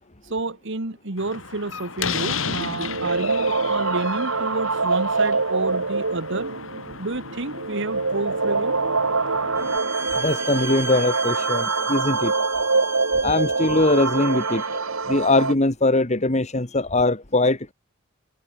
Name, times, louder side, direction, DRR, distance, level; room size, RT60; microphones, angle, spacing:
voice 1, 0.2-6.5 7.0-8.8, right 2 dB, 60° right, 1.7 m, -30 dB
Slam, 1.2-9.8, left 5 dB, 70° left, 5.1 m, -34 dB
sound 1, 2.0-15.5, right 4 dB, 90° right, 2.7 m, -25 dB
sound 2, 9.6-14.8, right 3 dB, 10° right, 4.9 m, -34 dB
voice 2, 10.2-12.3 13.2-17.7, left 2 dB, 35° left, 1.8 m, -21 dB
head